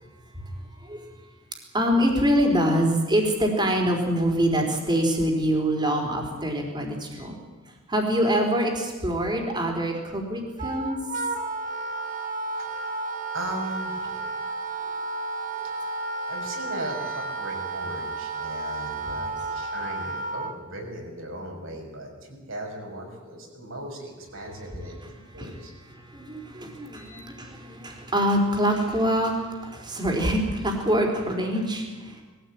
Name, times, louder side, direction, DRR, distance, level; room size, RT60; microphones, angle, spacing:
voice 1, 0.3-1.1 1.7-7.4 7.7-11.2 15.6-15.7 18.4-18.5 24.8-32.2, equal, 20° right, 2 dB, 4.1 m, -25 dB
Wind instrument woodwind instrument, 10.6-20.6, right 3 dB, 40° right, 1.6 m, -32 dB
voice 2, 12.6-13.0 13.3-14.3 16.3-25.0 25.3-25.7 26.9-27.2, right 1 dB, 70° right, 1 dB, 6.2 m, -38 dB
21.5 x 15.5 x 9.1 m, 1.3 s
head